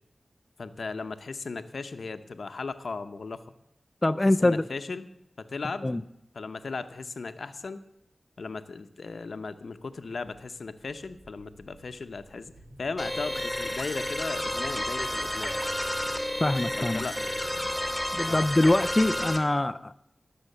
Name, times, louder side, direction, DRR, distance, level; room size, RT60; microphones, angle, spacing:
voice 1, 0.6-3.4 4.3-5.1 5.4-6.0 6.3-7.8 8.4-12.5 12.8-15.5 16.8-17.3 18.3-18.4, left 4 dB, 80° left, 10 dB, 0.9 m, -36 dB
voice 2, 4.0-4.6 5.8-6.0 16.4-17.0 18.1-19.9, left 2 dB, 25° left, 11 dB, 0.5 m, -24 dB
sound 1, 10.9-17.7, equal, 85° right, 3.6 m, -51 dB
sound 2, 13.0-19.4, left 1 dB, 5° left, 1.9 m, -31 dB
19.0 x 7.4 x 6.7 m, 0.83 s
wide cardioid pair, 75°, 0 cm